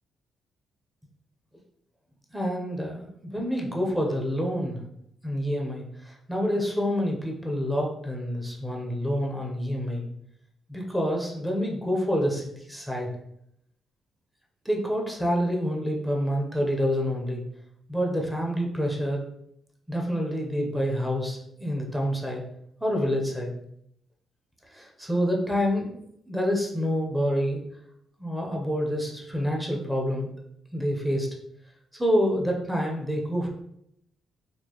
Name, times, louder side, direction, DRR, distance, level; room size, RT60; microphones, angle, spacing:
voice 1, 2.3-4.8 5.2-10.0 10.7-13.1 14.6-17.4 17.9-19.2 19.9-22.4 22.8-23.5 24.7-26.0 26.3-27.6 28.2-30.3 30.7-31.3 31.9-33.5, equal, 5° right, 0 dB, 0.7 m, -27 dB
4.3 x 2.4 x 2.9 m, 0.74 s
cardioid pair, 130°, 0 cm